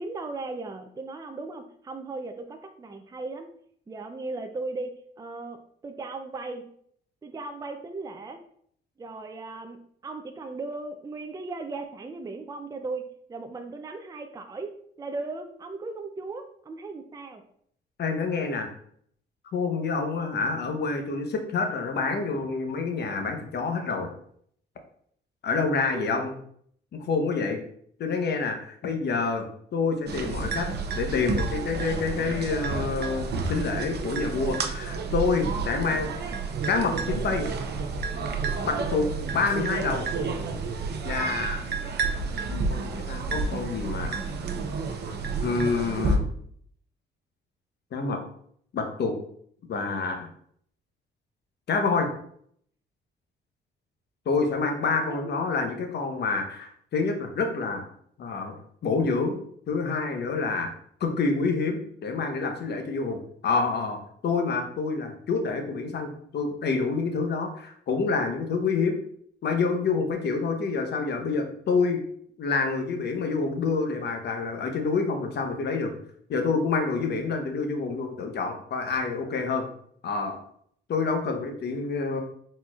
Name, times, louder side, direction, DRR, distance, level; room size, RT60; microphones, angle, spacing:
voice 1, 0.0-3.5 3.9-6.6 7.2-8.4 9.0-17.4 20.2-20.3 25.9-26.3 55.1-55.4, right 3 dB, 20° right, 6 dB, 0.4 m, -37 dB
voice 2, 18.0-18.7 19.5-24.1 25.4-26.3 27.1-27.6 28.0-29.4 29.7-30.7 30.9-36.1 36.7-37.5 38.6-39.1 39.3-40.1 41.0-41.6 42.7-44.3 45.4-46.3 47.9-48.2 48.7-49.2 49.7-50.3 51.7-52.1 54.3-57.9 58.2-58.5 58.8-59.4 59.7-60.7 61.0-69.0 69.4-72.0 72.4-75.9 76.3-79.7 80.0-80.4 80.9-82.2, left 4 dB, 55° left, 5 dB, 0.9 m, -27 dB
sound 1, 30.1-46.2, right 4 dB, 55° right, 0.7 m, -30 dB
4.3 x 4.1 x 2.4 m, 0.64 s
cardioid pair, 90°, 20 cm